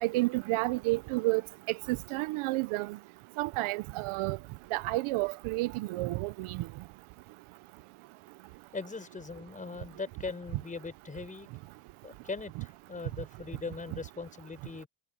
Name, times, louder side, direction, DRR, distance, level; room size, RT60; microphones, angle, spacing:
voice 1, 0.0-1.4 1.9-3.0 3.4-4.4 4.7-6.6, right 21 dB, 80° right, 0.9 m, -30 dB
voice 2, 8.7-11.5 12.0-14.9, left 4 dB, 15° left, 5.6 m, -40 dB
cardioid pair, 175°, 49 cm